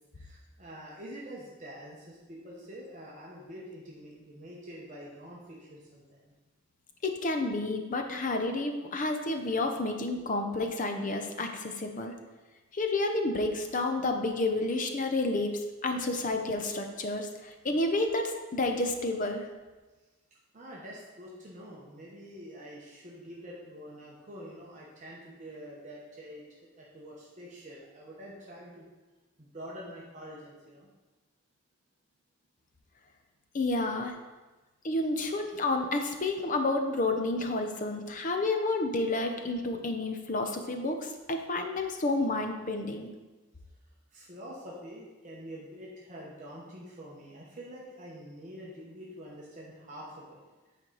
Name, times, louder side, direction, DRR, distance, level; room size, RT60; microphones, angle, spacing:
voice 1, 0.1-6.3 20.5-26.4 26.8-28.9 29.4-30.9 44.1-50.4, equal, 35° right, -5 dB, 1.0 m, -46 dB
voice 2, 7.0-12.1 12.7-19.5 33.5-34.2 34.8-43.1, left 2 dB, 35° left, 5 dB, 0.6 m, -30 dB
8.9 x 4.5 x 3.9 m, 1.2 s
head